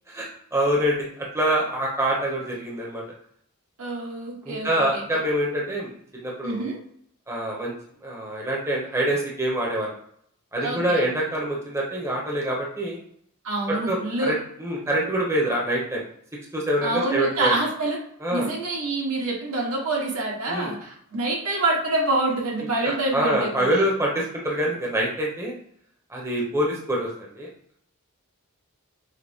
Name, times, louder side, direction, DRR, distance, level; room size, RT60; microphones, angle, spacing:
voice 1, 0.1-3.0 4.4-6.7 7.3-7.7 8.0-10.0 10.5-13.0 13.9-16.0 16.5-17.6 18.2-18.5 20.5-20.7 22.8-25.5 26.1-27.5, right 1 dB, 10° right, -3 dB, 0.8 m, -25 dB
voice 2, 3.8-5.0 6.4-6.8 10.6-11.0 13.4-14.3 16.8-18.0 18.3-23.8, right 2 dB, 75° right, -2 dB, 1.3 m, -26 dB
6.2 x 2.1 x 3.5 m, 0.66 s
head